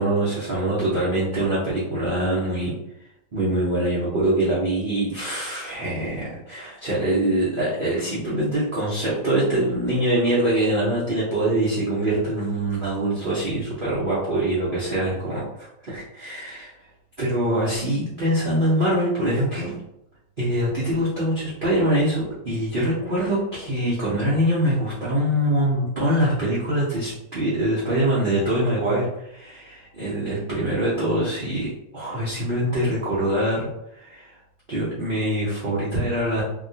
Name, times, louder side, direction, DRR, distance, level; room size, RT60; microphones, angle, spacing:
voice 1, 0.0-2.7 3.3-16.7 17.2-19.7 20.4-33.7 34.0-34.3 34.7-36.4, right 1 dB, 60° right, -9 dB, 0.5 m, -24 dB
2.9 x 2.8 x 2.7 m, 0.83 s
omnidirectional pair, 2.0 m